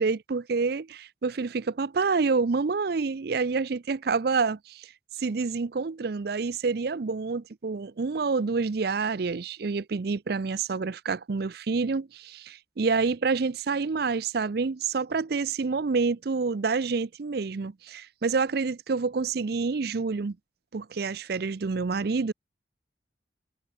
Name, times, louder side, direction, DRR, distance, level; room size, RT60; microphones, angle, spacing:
voice 1, 0.0-4.9 5.2-20.4 20.7-22.3, right 4 dB, 55° right, 0.5 m, -28 dB
head